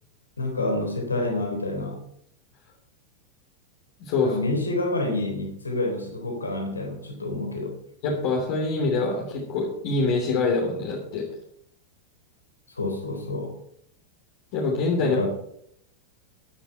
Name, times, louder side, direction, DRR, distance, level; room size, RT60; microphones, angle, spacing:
voice 1, 0.4-2.0 4.2-7.8 12.7-13.5 15.0-15.3, left 2 dB, 75° left, 4 dB, 3.7 m, -28 dB
voice 2, 4.0-4.3 8.0-11.3 14.5-15.2, left 3 dB, 45° left, -1 dB, 3.2 m, -25 dB
14.5 x 11.0 x 4.6 m, 0.69 s
figure-of-eight pair, 90°, 0 cm